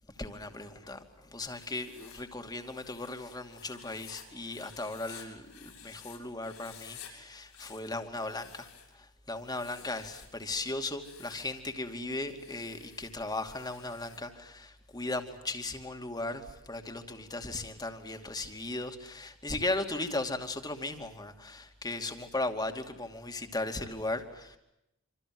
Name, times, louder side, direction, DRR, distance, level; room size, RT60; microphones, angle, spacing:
voice 1, 0.2-24.6, left 2 dB, 20° left, 2.7 m, -37 dB
Writing, 1.4-6.2 6.4-7.1 7.4-8.9 9.4-10.4 10.9-11.6 12.3-14.3, left 9 dB, 85° left, 7.7 m, -52 dB
27.0 x 27.0 x 7.9 m
head